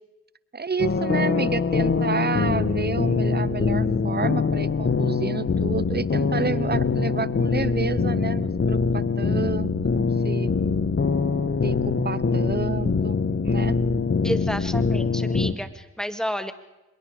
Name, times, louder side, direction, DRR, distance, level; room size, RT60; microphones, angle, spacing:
voice 1, 0.5-10.5 11.6-13.2 13.4-13.8, right 5 dB, 30° right, 18 dB, 1.0 m, -30 dB
sound 1, 0.8-15.5, left 4 dB, 40° left, 1.7 m, -23 dB
voice 2, 14.2-16.5, equal, ahead, 10 dB, 2.2 m, -30 dB
25.0 x 22.0 x 4.9 m, 1.0 s
cardioid pair, 55°, 31 cm